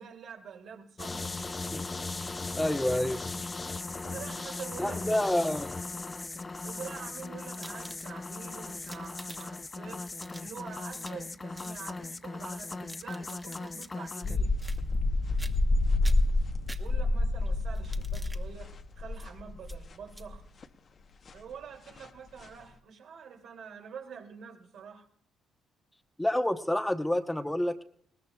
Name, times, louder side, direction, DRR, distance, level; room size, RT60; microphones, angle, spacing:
voice 1, 0.0-1.6 3.9-5.4 6.6-10.1 10.4-14.5 16.8-20.5 21.3-25.1, right 7 dB, 70° right, 2 dB, 2.6 m, -46 dB
sound 1, 1.0-14.4, left 3 dB, 25° left, 0.5 m, -38 dB
voice 2, 2.6-3.4 4.8-5.7 26.2-27.8, left 1 dB, 10° left, 7 dB, 0.9 m, -28 dB
sound 2, 5.5-6.0 6.8-8.4 8.7-9.7 10.0-11.3 11.6-11.8 12.6-14.0 14.6-15.1 15.4-15.8 16.0-17.3 17.7-18.4 19.1-19.3 19.6-19.8 20.1-20.3, right 1 dB, 15° right, 1.1 m, -50 dB
sound 3, 14.2-20.4 20.6-20.7 21.3-21.4 22.0-22.1 22.4-22.5, left 2 dB, 45° left, 1.0 m, -28 dB
20.5 x 18.5 x 2.3 m, 0.65 s
cardioid pair, 90°, 0 cm